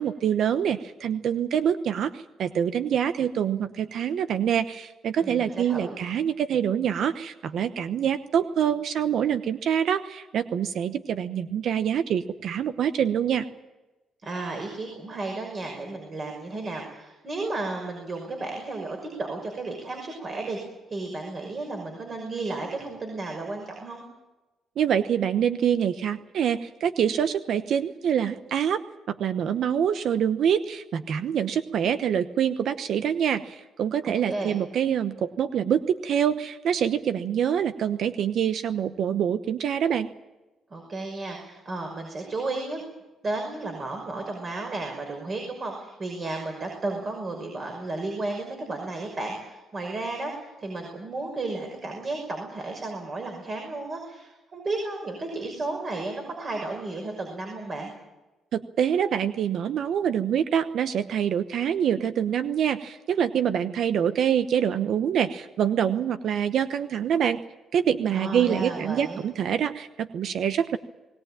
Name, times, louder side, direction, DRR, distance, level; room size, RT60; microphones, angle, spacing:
voice 1, 0.0-13.5 24.8-28.8 29.1-40.1 58.5-67.4 67.7-70.8, right 8 dB, 70° right, 11 dB, 1.0 m, -25 dB
voice 2, 5.2-6.0 14.2-20.6 20.9-24.0 34.0-34.6 40.7-42.8 43.2-57.9 68.1-69.2, right 2 dB, 40° right, 2 dB, 5.8 m, -33 dB
20.5 x 18.5 x 9.0 m, 1.1 s
cardioid pair, 90°, 0 cm